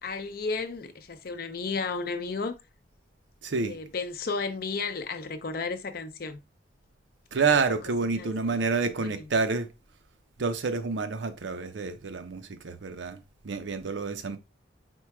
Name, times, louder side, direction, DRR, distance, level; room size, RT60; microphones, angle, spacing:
voice 1, 0.0-2.6 3.6-6.4 7.5-7.6 8.1-8.7 9.0-9.3, left 4 dB, 55° left, 0.5 m, -33 dB
voice 2, 3.4-3.8 7.3-9.7 10.4-14.4, right 4 dB, 75° right, 0.6 m, -28 dB
4.5 x 2.1 x 4.6 m
head